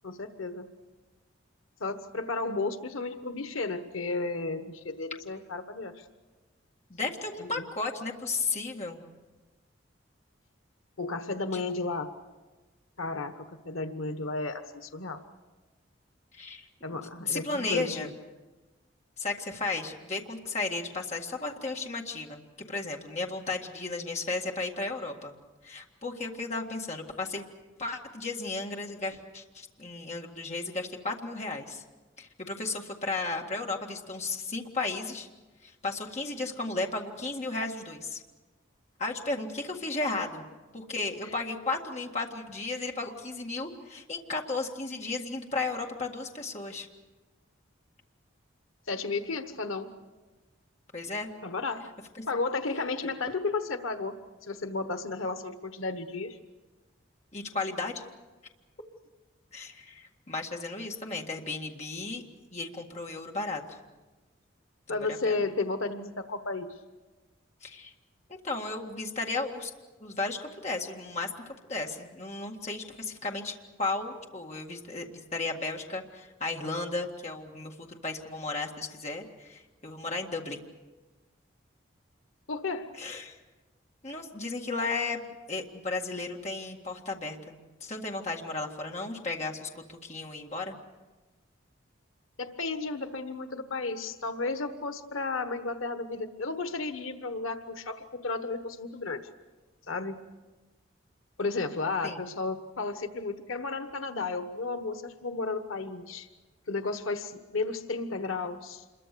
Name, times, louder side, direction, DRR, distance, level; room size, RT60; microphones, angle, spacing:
voice 1, 0.0-0.7 1.8-6.0 7.4-7.6 11.0-12.1 13.0-15.2 16.8-18.1 41.2-41.3 48.9-49.9 51.4-51.8 52.3-54.2 54.5-56.4 64.9-66.7 82.5-82.9 92.4-99.3 99.9-100.2 101.4-106.3 106.7-108.8, left 3 dB, 85° left, 9 dB, 1.2 m, -33 dB
voice 2, 6.9-9.0 11.5-11.6 16.3-16.7 17.2-18.1 19.2-25.3 25.6-27.4 27.8-31.8 32.2-35.3 35.6-38.2 39.0-40.4 40.7-46.9 50.9-51.3 52.2-52.3 57.3-58.0 59.5-62.2 62.5-63.8 64.9-65.4 67.6-67.9 68.3-69.7 70.0-71.3 71.7-80.7 83.0-83.4 84.0-85.2 85.5-90.8 102.0-102.3, left 3 dB, 35° left, 1 dB, 1.9 m, -34 dB
27.0 x 22.5 x 6.9 m, 1.2 s
head